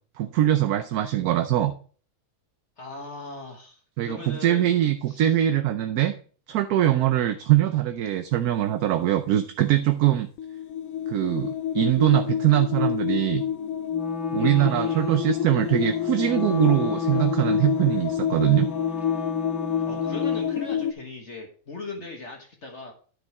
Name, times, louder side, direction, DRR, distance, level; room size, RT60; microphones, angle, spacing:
voice 1, 0.2-1.7 4.0-6.1 6.5-10.3 11.1-13.4 14.3-18.7, right 12 dB, 70° right, 9 dB, 1.1 m, -22 dB
voice 2, 2.8-4.7 5.1-5.3 14.4-15.1 19.8-22.9, left 3 dB, 45° left, 1 dB, 1.5 m, -39 dB
sound 1, 10.4-20.9, left 9 dB, 70° left, 0.9 m, -28 dB
Wind instrument woodwind instrument, 13.9-20.6, right 1 dB, ahead, 0.6 m, -37 dB
10.0 x 5.4 x 4.7 m, 0.42 s
omnidirectional pair, 1.7 m